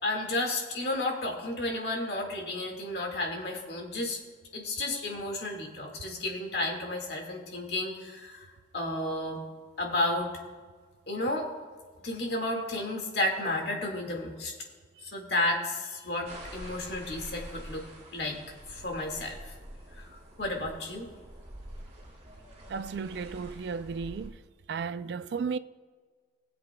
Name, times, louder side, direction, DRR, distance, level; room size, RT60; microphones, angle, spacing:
voice 1, 0.0-4.2 4.5-8.5 8.7-9.4 9.8-10.3 11.1-11.5 12.0-14.5 15.1-17.8 18.1-18.4 18.7-19.4 20.0-20.1 20.4-21.1, left 1 dB, 60° left, 1.8 m, -32 dB
sound 1, 16.3-24.3, right 1 dB, 35° right, 1.9 m, -46 dB
voice 2, 22.7-24.4 24.7-25.6, right 5 dB, 65° right, 0.3 m, -34 dB
20.5 x 7.8 x 2.2 m
head